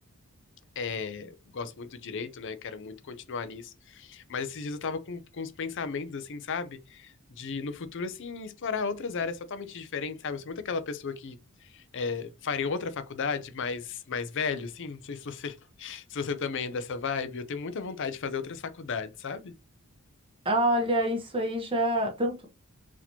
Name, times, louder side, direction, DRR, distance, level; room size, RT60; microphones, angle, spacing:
voice 1, 0.8-11.4 11.7-19.5, left 5 dB, 55° left, 0.5 m, -34 dB
voice 2, 20.4-22.5, right 1 dB, 25° right, 1.0 m, -26 dB
4.1 x 2.9 x 2.8 m
head